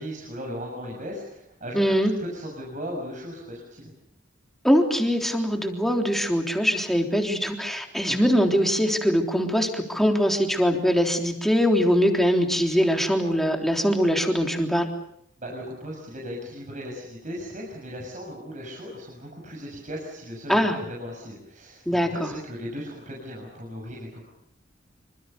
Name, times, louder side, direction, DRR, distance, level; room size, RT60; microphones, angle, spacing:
voice 1, 0.0-3.9 15.4-24.2, equal, 40° right, -1 dB, 6.8 m, -37 dB
voice 2, 1.7-2.1 4.6-14.9 20.5-20.8 21.9-22.3, equal, ahead, 3 dB, 3.5 m, -22 dB
26.5 x 26.0 x 6.9 m, 0.74 s
head